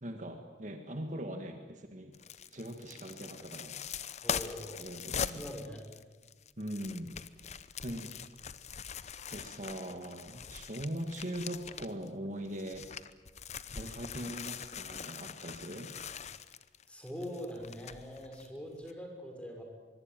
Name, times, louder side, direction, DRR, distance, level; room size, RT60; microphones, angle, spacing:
voice 1, 0.0-2.1 2.5-3.8 4.8-5.5 6.6-7.1 7.8-8.2 9.3-12.9 13.7-15.9, right 1 dB, 45° right, 5 dB, 1.9 m, -41 dB
sound 1, 2.1-12.1 12.4-18.5 18.8-18.9, left 7 dB, 40° left, 0.8 m, -42 dB
voice 2, 4.2-4.8 5.3-5.8 16.9-19.6, equal, 5° left, 2 dB, 5.9 m, -43 dB
24.0 x 23.0 x 9.1 m, 1.3 s
head